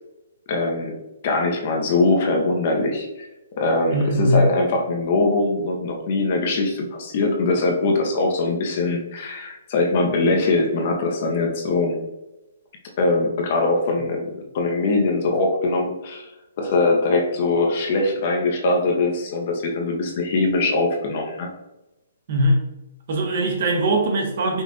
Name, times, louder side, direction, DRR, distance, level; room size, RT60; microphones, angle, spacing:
voice 1, 0.5-1.0 1.2-3.1 3.6-12.0 13.0-16.3 16.6-21.5, left 2 dB, 35° left, 1 dB, 0.7 m, -22 dB
voice 2, 3.9-4.4 22.3-22.6 23.1-24.6, right 1 dB, 40° right, 2 dB, 0.8 m, -20 dB
5.4 x 2.4 x 3.8 m, 0.95 s
hypercardioid pair, 175°, 0 cm